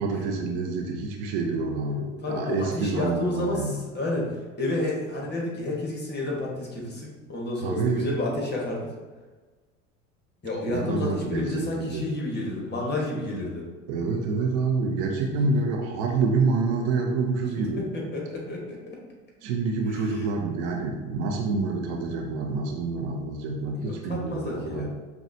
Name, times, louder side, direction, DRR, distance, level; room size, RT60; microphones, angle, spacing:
voice 1, 0.0-3.7 7.6-8.1 10.7-12.1 13.9-17.8 19.4-24.9, right 4 dB, 55° right, 2 dB, 0.6 m, -27 dB
voice 2, 2.2-8.9 10.4-13.7 17.6-19.0 19.9-20.2 23.7-24.9, left 2 dB, 25° left, -3 dB, 1.4 m, -30 dB
5.4 x 2.3 x 2.7 m, 1.3 s
figure-of-eight pair, 70°, 40 cm